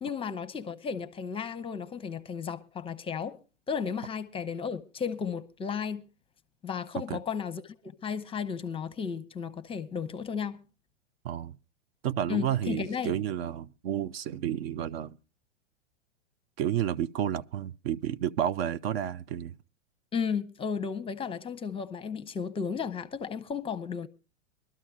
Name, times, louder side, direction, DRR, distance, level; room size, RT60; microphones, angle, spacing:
voice 1, 0.0-3.4 3.7-6.0 6.6-10.6 12.3-13.1 20.1-24.1, left 6 dB, 15° left, 0.8 m, -34 dB
voice 2, 12.0-15.2 16.6-19.5, right 10 dB, 55° right, 0.6 m, -31 dB
23.0 x 13.0 x 2.4 m
hypercardioid pair, 105°, 36 cm